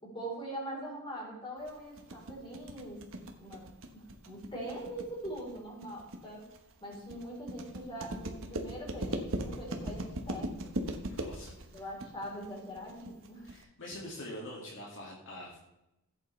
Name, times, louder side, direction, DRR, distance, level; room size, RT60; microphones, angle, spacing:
voice 1, 0.0-3.0 3.4-3.6 3.9-6.5 6.8-10.8 11.7-13.5, right 1 dB, 25° left, -3 dB, 3.9 m, -42 dB
sound 1, 1.7-13.6, right 1 dB, 65° right, 1.2 m, -39 dB
voice 2, 11.1-11.8 13.4-15.6, left 1 dB, 60° left, -3 dB, 2.2 m, -45 dB
15.0 x 8.3 x 3.3 m, 0.89 s
head